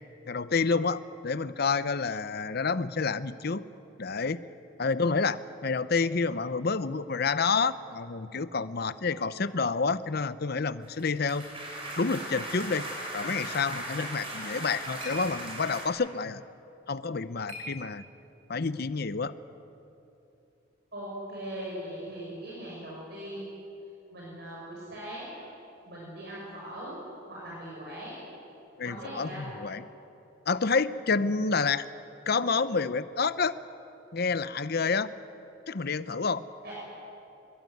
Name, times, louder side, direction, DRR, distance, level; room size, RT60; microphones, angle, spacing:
voice 1, 0.3-3.7 4.0-4.4 4.8-11.5 12.0-12.9 13.1-16.4 16.9-18.0 18.5-19.3 28.8-29.8 30.5-31.8 32.3-33.5 34.1-35.1 35.7-36.4, left 4 dB, 50° left, 14 dB, 0.7 m, -29 dB
sound 1, 10.8-15.9, right 1 dB, 30° right, 4.6 m, -38 dB
sound 2, 14.2-18.5, equal, 80° right, 4.3 m, -48 dB
voice 2, 20.9-23.5 24.1-25.3 25.9-26.9 27.3-28.2 28.8-29.4 36.6-36.7, right 1 dB, 55° right, -6 dB, 6.7 m, -40 dB
22.5 x 22.0 x 9.3 m, 2.9 s
head